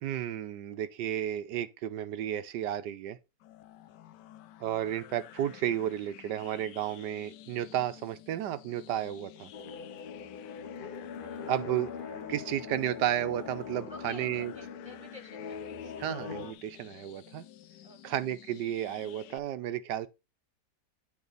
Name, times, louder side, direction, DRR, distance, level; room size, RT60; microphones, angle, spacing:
voice 1, 0.0-3.2 4.6-9.5 11.5-11.9 12.3-14.5 16.0-17.4 18.0-20.1, right 11 dB, 85° right, 1.4 m, -32 dB
sound 1, 3.4-19.4, left 12 dB, 85° left, 1.2 m, -51 dB
voice 2, 3.9-4.3 11.2-11.5 13.9-16.0 17.8-18.0, left 1 dB, 20° right, 1.5 m, -51 dB
sound 2, 9.5-16.5, left 6 dB, 50° left, 0.6 m, -42 dB
9.7 x 4.2 x 3.9 m
omnidirectional pair, 1.8 m